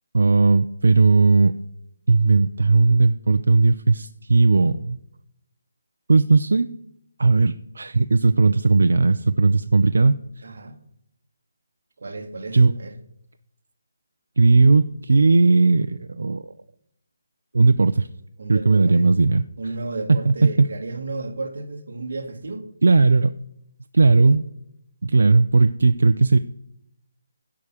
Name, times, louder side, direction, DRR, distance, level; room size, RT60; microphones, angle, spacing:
voice 1, 0.1-1.5 2.1-5.0 6.1-6.7 7.2-10.2 12.5-12.7 14.4-16.4 17.5-18.1 18.5-19.4 20.1-20.5 22.8-23.4 23.9-24.4 25.0-26.4, right 3 dB, 75° right, 0.4 m, -17 dB
voice 2, 10.4-10.8 12.0-13.0 18.4-19.1 19.6-22.7 24.2-24.4, right 3 dB, 50° right, 1.3 m, -33 dB
11.5 x 4.8 x 7.2 m
hypercardioid pair, 180°, 0 cm